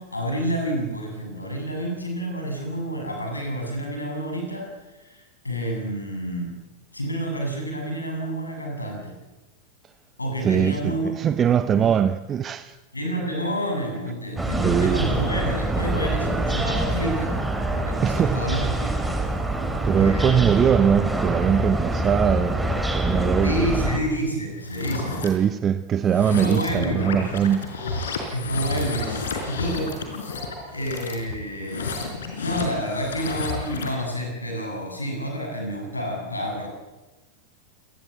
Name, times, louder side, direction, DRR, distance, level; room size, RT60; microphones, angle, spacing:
voice 1, 0.0-4.7 5.0-6.6 6.9-9.2 10.2-11.2 11.7-11.9 12.9-19.2 19.9-20.5 23.4-25.2 26.3-27.1 28.3-29.2 29.5-30.0 30.7-31.9 32.4-36.7, equal, 80° left, 7.8 m, -29 dB
voice 2, 10.4-12.8 14.6-15.1 18.0-18.4 19.8-22.6 22.9-23.7 25.2-27.6, right 8 dB, 25° right, 0.8 m, -21 dB
sound 1, 14.4-24.0, right 1 dB, 5° right, 3.7 m, -25 dB
sound 2, 24.6-25.3 26.0-34.0, left 4 dB, 65° left, 5.1 m, -31 dB
27.0 x 20.0 x 8.1 m
figure-of-eight pair, 90°, 0 cm